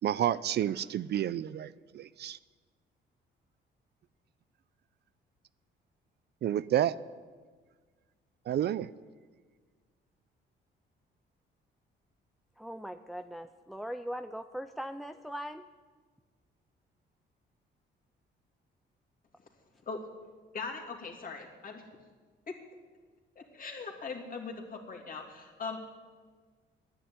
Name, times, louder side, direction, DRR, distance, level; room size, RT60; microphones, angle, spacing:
voice 1, 0.0-1.7 1.9-2.4 6.4-6.9 8.5-8.9, right 11 dB, 55° right, 18 dB, 0.4 m, -29 dB
voice 2, 12.6-15.7, equal, ahead, 9 dB, 0.4 m, -40 dB
voice 3, 20.5-21.8 22.5-22.6 23.3-25.8, left 4 dB, 45° left, 0 dB, 2.9 m, -40 dB
10.5 x 9.9 x 9.6 m, 1.5 s
cardioid pair, 90°, 20 cm